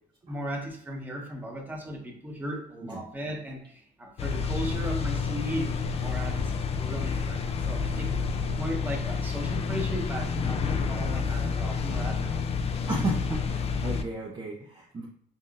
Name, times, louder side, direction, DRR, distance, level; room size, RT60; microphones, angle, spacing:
voice 1, 0.3-6.4 6.8-12.4, equal, 10° right, 0 dB, 1.1 m, -36 dB
sound 1, 4.2-14.0, left 5 dB, 35° left, 0.4 m, -29 dB
voice 2, 12.9-15.1, right 2 dB, 25° right, -2 dB, 0.6 m, -33 dB
5.5 x 2.5 x 2.5 m, 0.68 s
cardioid pair, 110°, 17 cm